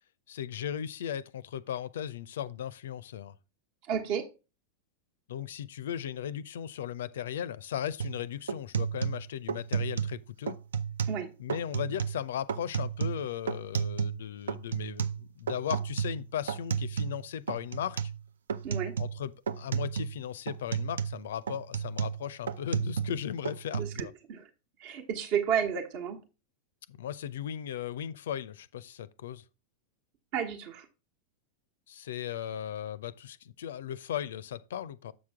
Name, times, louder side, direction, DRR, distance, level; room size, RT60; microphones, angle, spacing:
voice 1, 0.3-3.4 5.3-10.6 11.4-18.1 19.0-24.1 26.9-29.4 31.9-35.1, left 9 dB, 60° left, 0.4 m, -37 dB
voice 2, 3.9-4.2 11.1-11.3 18.6-19.0 23.7-24.5 24.8-26.2 30.3-30.9, right 8 dB, 45° right, 1.2 m, -32 dB
sound 1, 8.0-8.2 8.5-10.2 10.5-11.2 11.5-12.2 12.5-14.2 14.5-17.2 17.5-18.2 18.5-19.2 19.5-20.2 20.5-23.2 23.4-24.0, right 7 dB, 65° right, 0.4 m, -32 dB
7.5 x 5.9 x 3.4 m
figure-of-eight pair, 90°, 0 cm